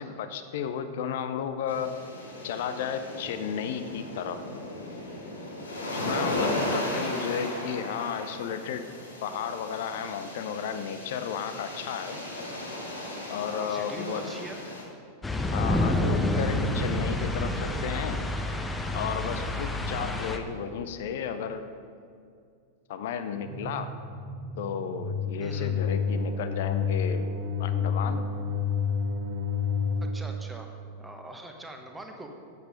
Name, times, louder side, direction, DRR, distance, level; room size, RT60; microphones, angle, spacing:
voice 1, 0.0-1.9 2.4-4.4 5.9-8.9 9.2-12.2 13.3-14.2 15.5-18.2 18.9-21.7 22.9-23.9 24.6-27.3 27.6-28.3, left 7 dB, 55° left, 9 dB, 0.6 m, -33 dB
sound 1, 1.7-14.8, left 1 dB, 80° left, 1.8 m, -36 dB
voice 2, 6.7-7.3 13.5-14.6 25.4-25.7 30.1-30.7 31.0-32.3, right 1 dB, 10° right, 3 dB, 1.1 m, -41 dB
sound 2, 15.2-20.4, left 1 dB, 10° left, 0.8 m, -28 dB
sound 3, 23.4-30.1, left 6 dB, 40° right, 1.3 m, -29 dB
9.2 x 8.2 x 5.2 m, 2.3 s
figure-of-eight pair, 90°, 0 cm